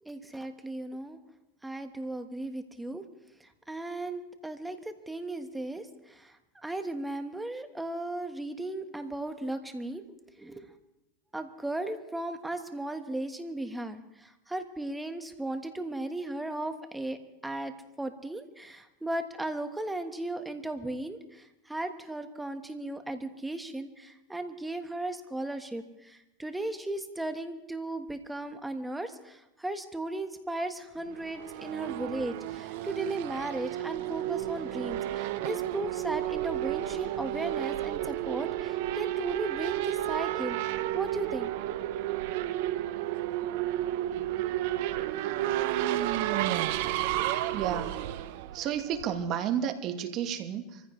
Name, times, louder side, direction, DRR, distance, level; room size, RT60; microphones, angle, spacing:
voice 1, 0.0-1.2 1.6-3.0 3.4-10.0 10.3-10.7 11.3-17.7 18.0-40.6 40.9-41.5, right 2 dB, 5° right, 7 dB, 1.4 m, -36 dB
Race car auto racing / Accelerating revving vroom, 31.1-49.3, right 14 dB, 65° right, 0.9 m, -32 dB
voice 2, 47.5-47.9 48.5-50.8, right 9 dB, 45° right, 7 dB, 1.5 m, -31 dB
25.0 x 15.0 x 3.2 m, 0.96 s
supercardioid pair, 120°, 0 cm